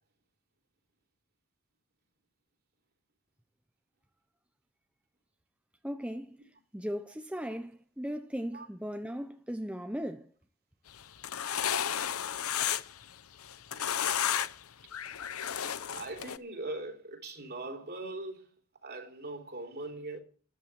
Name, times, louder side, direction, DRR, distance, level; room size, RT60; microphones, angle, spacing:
voice 1, 5.8-6.4 6.7-10.3, equal, 5° right, 0.9 m, -37 dB
sound 1, 11.0-13.0 13.4-14.6 14.9-16.4, left 9 dB, 75° left, 0.9 m, -32 dB
voice 2, 15.9-18.5 18.8-20.2, right 2 dB, 45° right, 3.4 m, -40 dB
13.0 x 11.5 x 7.7 m
head